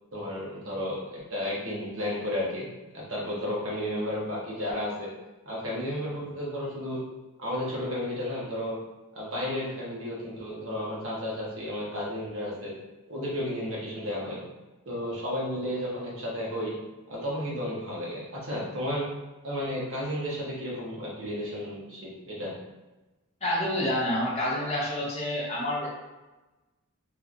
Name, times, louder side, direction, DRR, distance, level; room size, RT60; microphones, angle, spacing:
voice 1, 0.1-2.7 2.9-5.1 5.5-7.0 7.4-8.7 9.1-12.7 13.1-14.4 14.9-16.7 17.1-19.1 19.4-22.6, left 1 dB, 60° right, -5 dB, 1.0 m, -33 dB
voice 2, 23.4-25.9, left 1 dB, 30° left, -5 dB, 0.7 m, -28 dB
3.0 x 3.0 x 2.5 m, 1.1 s
head